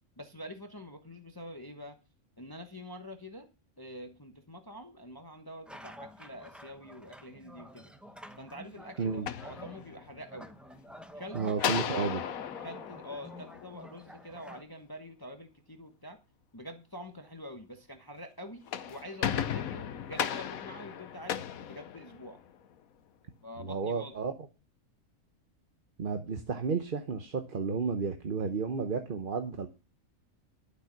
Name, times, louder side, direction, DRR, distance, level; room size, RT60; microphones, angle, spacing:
voice 1, 0.2-2.0 2.4-3.5 3.8-7.9 8.4-10.5 11.1-12.4 12.6-16.2 16.5-21.4 21.7-22.4 23.4-24.2, equal, 20° left, 5 dB, 1.0 m, -46 dB
sound 1, 5.7-14.6, equal, ahead, 0.7 m, -50 dB
sound 2, 9.1-10.3 11.6-14.1 18.5-22.5, left 9 dB, 85° left, 1.3 m, -35 dB
voice 2, 11.3-12.2 23.6-24.3 26.0-29.7, right 5 dB, 45° right, 6 dB, 1.0 m, -32 dB
12.0 x 6.7 x 5.9 m, 0.30 s
omnidirectional pair, 1.4 m